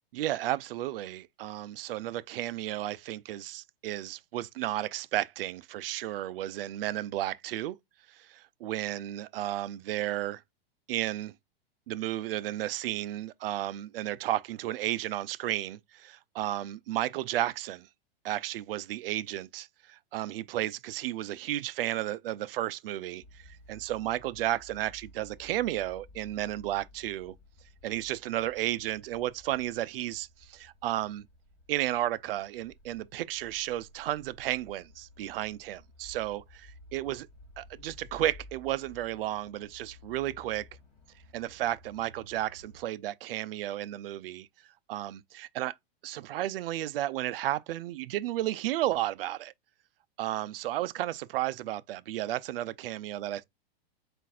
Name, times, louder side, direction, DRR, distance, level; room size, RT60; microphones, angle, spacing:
voice 1, 0.1-7.8 8.1-10.4 10.9-11.3 11.9-17.9 18.2-27.3 27.8-31.3 31.7-37.3 37.6-40.7 41.3-44.5 44.9-45.7 46.0-49.5 50.2-53.4, right 14 dB, 65° right, 0.4 m, -33 dB
sound 1, 23.2-42.8, left 2 dB, 25° left, 1.9 m, -55 dB
7.5 x 2.5 x 2.3 m
hypercardioid pair, 145°, 31 cm